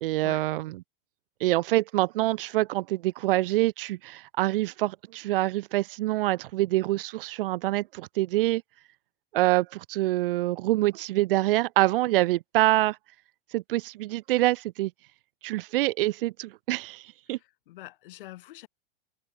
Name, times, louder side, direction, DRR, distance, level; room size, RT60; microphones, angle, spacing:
voice 1, 0.0-0.8 1.4-8.6 9.3-13.0 13.5-14.9 15.4-17.4, right 17 dB, 70° right, 0.7 m, -26 dB
voice 2, 17.3-18.7, left 16 dB, 65° left, 3.5 m, -45 dB
supercardioid pair, 170°, 29 cm